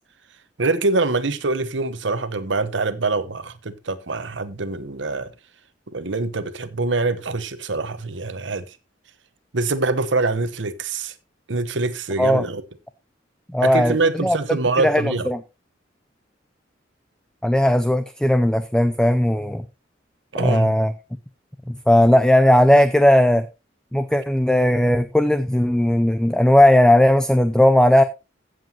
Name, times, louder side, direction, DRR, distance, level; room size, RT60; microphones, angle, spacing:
voice 1, 0.6-5.3 5.9-8.7 9.5-11.1 11.5-12.6 13.6-15.3 20.3-20.7, right 3 dB, 80° right, 1.0 m, -24 dB
voice 2, 13.5-14.4 14.8-15.4 17.4-19.6 20.4-20.9 21.7-23.5 23.9-28.0, left 1 dB, 5° left, 0.5 m, -17 dB
15.0 x 7.8 x 2.9 m
head